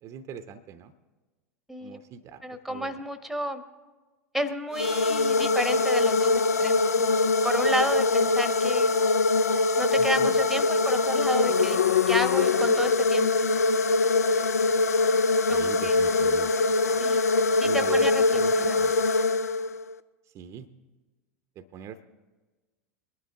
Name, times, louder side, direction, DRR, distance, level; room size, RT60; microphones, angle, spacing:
voice 1, 0.0-0.9 1.8-2.9 10.0-10.4 15.4-17.0 17.6-19.1 20.3-20.7 21.6-22.0, right 8 dB, 35° right, 11 dB, 0.7 m, -42 dB
voice 2, 2.4-3.6 4.3-7.1 7.4-8.9 9.8-13.3 15.5-16.0 17.0-17.2 17.6-18.8, equal, ahead, 11 dB, 0.9 m, -31 dB
sound 1, 4.7-19.9, left 3 dB, 80° left, 0.4 m, -23 dB
21.5 x 11.0 x 3.5 m, 1.2 s
figure-of-eight pair, 85°, 8 cm